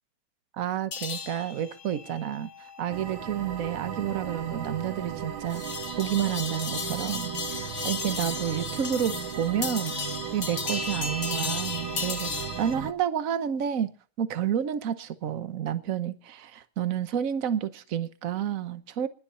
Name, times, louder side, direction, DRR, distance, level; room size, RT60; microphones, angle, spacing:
voice 1, 0.5-5.6 6.0-7.3 7.8-9.9 10.3-13.9 14.2-19.1, right 9 dB, 50° right, 1.2 m, -30 dB
sound 1, 0.9-12.7, left 5 dB, 45° left, 1.9 m, -36 dB
sound 2, 2.9-12.9, right 8 dB, 65° right, 1.6 m, -36 dB
21.0 x 7.1 x 6.9 m
omnidirectional pair, 2.4 m